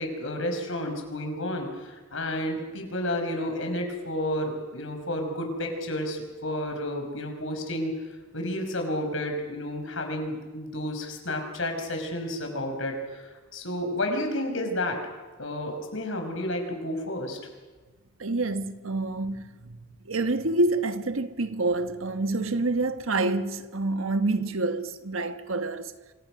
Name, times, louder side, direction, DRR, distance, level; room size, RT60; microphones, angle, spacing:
voice 1, 0.0-8.0 8.3-15.0 15.4-17.4, left 1 dB, 65° left, 5.5 m, -31 dB
voice 2, 18.2-25.9, right 2 dB, 75° right, 1.3 m, -27 dB
27.0 x 25.5 x 6.1 m
head